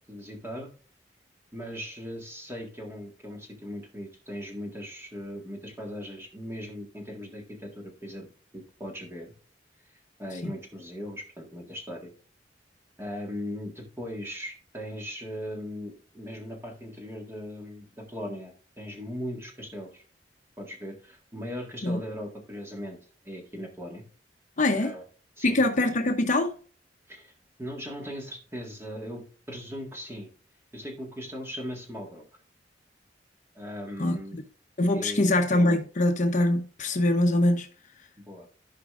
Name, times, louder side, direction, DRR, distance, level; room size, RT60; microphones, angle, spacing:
voice 1, 0.1-0.7 1.5-8.3 8.5-9.3 10.2-12.1 13.0-20.0 20.6-23.0 23.2-24.0 24.7-25.0 25.4-25.6 27.1-27.3 27.6-30.3 30.7-32.2 33.5-34.4 34.9-35.3 38.3-38.5, equal, 15° right, 1.8 m, -39 dB
voice 2, 24.6-25.0 25.4-26.6 34.0-34.4 34.8-37.7, left 1 dB, 45° left, 0.8 m, -23 dB
15.0 x 5.0 x 2.5 m
head